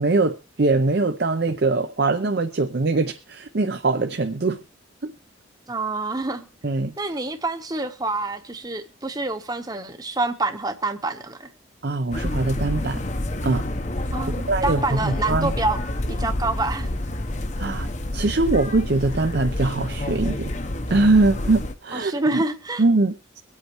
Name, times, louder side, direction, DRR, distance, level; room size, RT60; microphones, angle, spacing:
voice 1, 0.0-4.6 5.0-5.1 6.6-6.9 11.8-13.0 13.4-13.6 14.5-15.5 17.6-20.5 20.9-22.4 22.8-23.4, right 3 dB, 55° right, 0.7 m, -22 dB
voice 2, 5.7-6.5 7.0-11.5 14.1-15.8 16.1-16.9 21.9-22.8, right 2 dB, 20° right, 1.0 m, -27 dB
sound 1, 12.1-21.8, left 1 dB, 35° left, 0.8 m, -28 dB
24.0 x 8.3 x 3.1 m
head